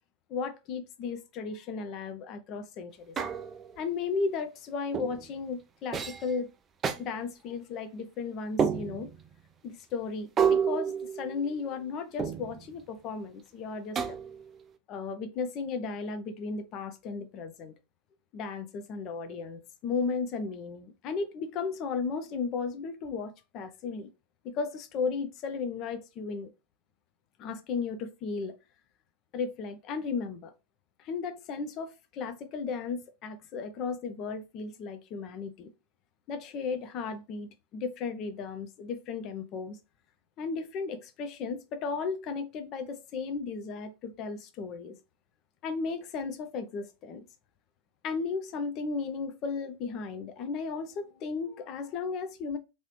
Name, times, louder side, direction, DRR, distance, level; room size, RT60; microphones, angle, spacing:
voice 1, 0.3-3.2 3.8-6.5 7.0-9.1 9.6-14.2 14.9-17.7 18.3-24.1 24.4-26.5 27.4-28.6 29.3-30.5 31.0-35.7 36.3-39.8 40.4-45.0 45.6-47.3 48.0-52.6, left 5 dB, 35° left, 0.5 m, -35 dB
sound 1, 3.2-3.8 4.9-5.3 5.9-6.3 6.8-7.0 8.6-9.2 10.4-11.7 12.2-12.7 14.0-14.5, right 7 dB, 25° right, 0.3 m, -29 dB
3.0 x 2.8 x 3.0 m
figure-of-eight pair, 90°, 0 cm